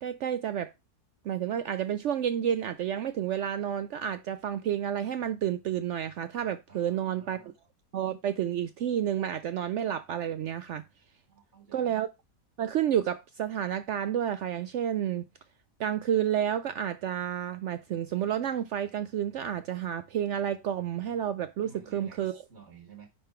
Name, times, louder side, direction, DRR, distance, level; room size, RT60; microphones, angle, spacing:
voice 1, 0.0-0.7 1.2-7.4 7.9-10.8 11.7-12.1 12.6-15.2 15.8-22.4, right 10 dB, 85° right, 0.6 m, -30 dB
voice 2, 6.7-7.5 11.3-12.0 21.6-23.1, right 6 dB, 40° right, 1.8 m, -52 dB
9.6 x 3.8 x 4.3 m
omnidirectional pair, 1.8 m